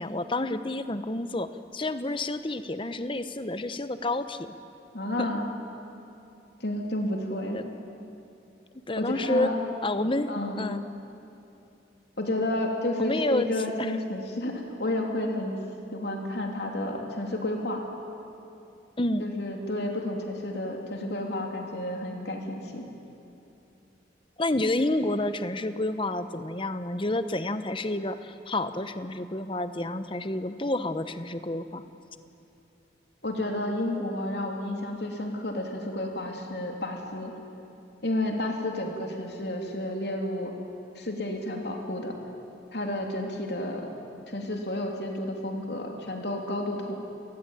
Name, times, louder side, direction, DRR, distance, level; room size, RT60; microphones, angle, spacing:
voice 1, 0.0-4.5 5.2-5.3 7.5-7.6 8.9-9.5 9.8-10.3 10.6-10.8 13.0-13.5 13.8-13.9 19.0-19.3 24.4-31.8, left 2 dB, 30° left, 10 dB, 1.0 m, -29 dB
voice 2, 4.9-5.5 6.6-7.6 9.0-9.6 10.3-10.6 12.2-15.6 15.9-17.9 19.2-22.8 33.2-37.3 38.0-40.5 40.9-42.2 42.7-43.9 44.3-47.0, left 1 dB, 65° left, 2 dB, 3.2 m, -31 dB
29.0 x 19.5 x 9.1 m, 2.7 s
head